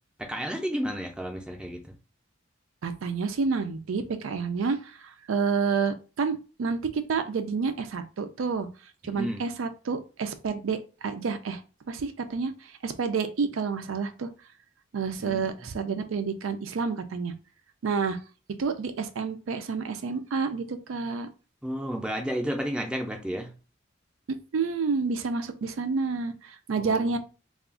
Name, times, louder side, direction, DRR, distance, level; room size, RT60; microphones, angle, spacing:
voice 1, 0.2-1.8 9.0-9.4 15.2-15.7 21.6-23.5 26.8-27.2, equal, 5° right, 2 dB, 0.5 m, -32 dB
voice 2, 2.8-8.7 9.0-11.6 11.9-14.3 14.9-17.3 17.8-18.2 18.6-21.3 24.3-27.2, right 5 dB, 85° right, 9 dB, 0.4 m, -29 dB
2.4 x 2.4 x 3.6 m, 0.33 s
head